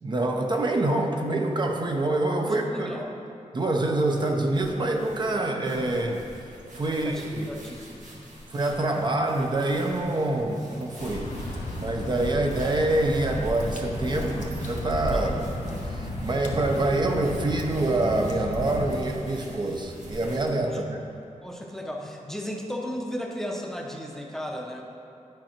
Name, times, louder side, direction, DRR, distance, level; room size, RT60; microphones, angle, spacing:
voice 1, 0.0-2.9 3.5-6.2 6.8-7.5 8.5-15.3 15.8-21.0, right 2 dB, 35° right, 2 dB, 0.6 m, -26 dB
voice 2, 2.4-3.2 6.8-8.2 15.1-15.5 20.7-20.8 21.4-24.8, equal, 5° left, 0 dB, 0.7 m, -35 dB
sound 1, 4.1-20.6, right 1 dB, 85° right, 1.6 m, -46 dB
Water / Drip, 11.0-18.9, left 1 dB, 75° left, 1.2 m, -33 dB
10.5 x 5.5 x 4.4 m, 2.6 s
wide cardioid pair, 150°, 13 cm